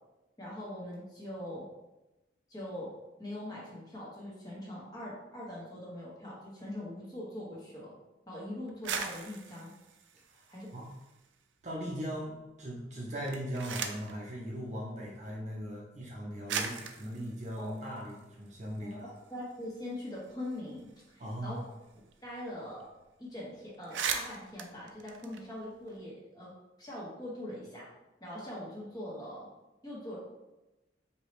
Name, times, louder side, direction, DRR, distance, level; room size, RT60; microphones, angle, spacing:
voice 1, 0.4-1.6 2.5-2.9 3.2-7.9 8.3-9.7 10.5-10.7 11.8-11.9 17.6-17.8 18.8-20.8 21.1-21.6 22.2-22.8 23.2-26.5 26.8-27.8 28.2-29.5 29.8-30.2, left 1 dB, 20° left, -6 dB, 1.2 m, -42 dB
sound 1, 8.7-11.3 11.6-12.3 13.1-14.2 15.2-15.3 16.1-16.2 16.5-18.8 19.2-19.3 19.5-22.1 22.4-22.5 22.8-23.0 23.4-23.5 23.7-26.0, right 6 dB, 90° right, 0.4 m, -40 dB
voice 2, 10.3-10.9 11.6-12.3 12.6-19.1 21.2-21.6, equal, 40° right, -3 dB, 0.7 m, -39 dB
4.7 x 2.9 x 3.2 m, 1.0 s
head